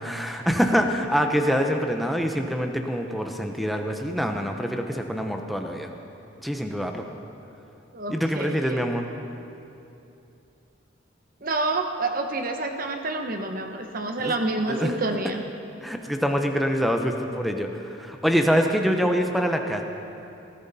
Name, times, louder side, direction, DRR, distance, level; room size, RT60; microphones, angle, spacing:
voice 1, 0.0-5.9 6.4-7.0 8.1-9.1 14.2-14.4 14.7-14.9 15.8-19.8, equal, ahead, 4 dB, 0.8 m, -25 dB
voice 2, 7.9-8.8 11.4-15.4, right 2 dB, 45° right, 5 dB, 1.1 m, -28 dB
19.0 x 14.5 x 4.2 m, 2.8 s
head